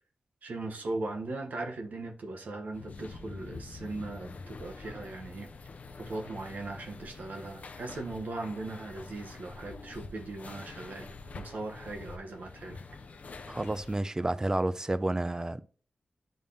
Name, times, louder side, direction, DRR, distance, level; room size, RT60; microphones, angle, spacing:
voice 1, 0.4-5.5 6.0-12.8, right 2 dB, 75° right, 1.1 m, -39 dB
sound 1, 2.7-14.0, left 3 dB, 60° left, 0.5 m, -46 dB
voice 2, 13.5-15.6, right 2 dB, 20° right, 0.4 m, -30 dB
10.5 x 3.6 x 2.6 m
cardioid pair, 65°, 3 cm